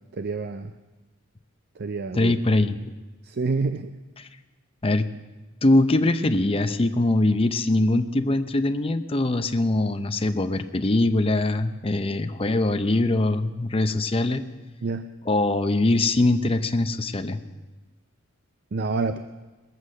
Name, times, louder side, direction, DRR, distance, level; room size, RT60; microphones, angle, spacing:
voice 1, 0.2-0.7 1.8-2.3 3.2-3.9 14.8-15.0 18.7-19.2, right 4 dB, 50° right, 9 dB, 0.5 m, -27 dB
voice 2, 2.1-2.8 4.2-4.3 4.8-5.1 5.6-14.4 15.3-17.4, left 2 dB, 25° left, 9 dB, 0.6 m, -22 dB
21.0 x 8.0 x 6.4 m, 1.2 s
head